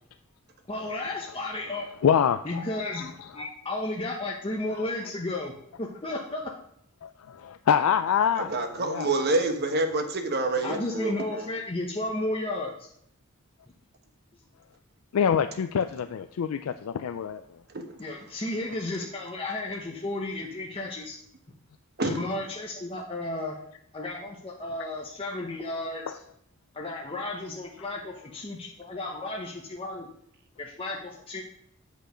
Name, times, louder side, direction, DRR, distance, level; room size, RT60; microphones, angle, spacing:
voice 1, 0.7-1.9 2.5-6.5 10.6-12.9 18.0-21.2 22.0-23.6 23.9-26.0 26.7-30.1 30.6-31.4, left 2 dB, 25° left, -1 dB, 0.8 m, -33 dB
voice 2, 2.0-3.3 7.0-9.3 15.1-17.6 26.1-26.2, left 7 dB, 90° left, 9 dB, 0.4 m, -26 dB
voice 3, 8.4-11.5 17.7-17.8 22.0-22.2, right 2 dB, 50° right, 6 dB, 1.1 m, -27 dB
8.7 x 5.2 x 5.0 m, 0.73 s
head